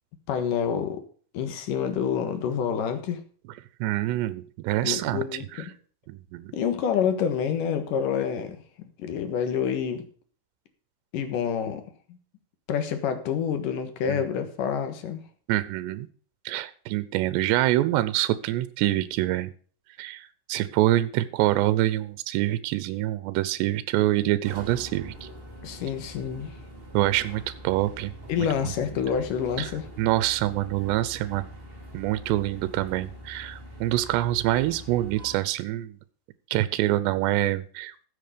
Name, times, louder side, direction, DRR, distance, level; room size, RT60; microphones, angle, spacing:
voice 1, 0.3-1.0 1.3-3.2 4.8-5.7 6.5-8.6 9.0-10.1 11.1-11.8 12.7-15.2 25.6-26.5 28.3-29.9, left 7 dB, 60° left, 8 dB, 2.6 m, -27 dB
voice 2, 3.8-5.2 5.6-5.7 6.1-6.5 14.1-14.2 15.5-16.1 16.5-19.5 20.0-25.3 26.9-28.1 28.4-28.7 29.6-29.7 30.0-31.5 31.9-36.0 36.5-37.9, right 15 dB, 85° right, 15 dB, 2.9 m, -26 dB
sound 1, 24.4-35.4, equal, 20° right, 2.0 m, -44 dB
14.5 x 7.4 x 5.1 m, 0.43 s
omnidirectional pair, 4.9 m